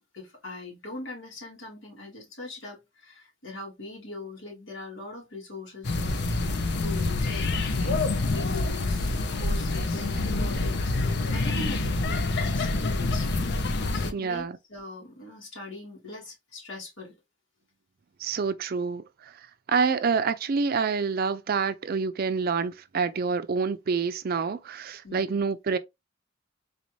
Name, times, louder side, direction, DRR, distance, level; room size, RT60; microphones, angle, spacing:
voice 1, 0.1-6.5 6.8-13.3 13.9-17.1 25.0-25.4, left 2 dB, 90° left, 2.3 m, -41 dB
sound 1, 5.8-14.1, left 2 dB, 60° left, 0.6 m, -27 dB
voice 2, 14.1-14.5 18.2-19.0 19.7-25.8, right 5 dB, 50° right, 0.4 m, -27 dB
4.1 x 2.6 x 3.0 m
head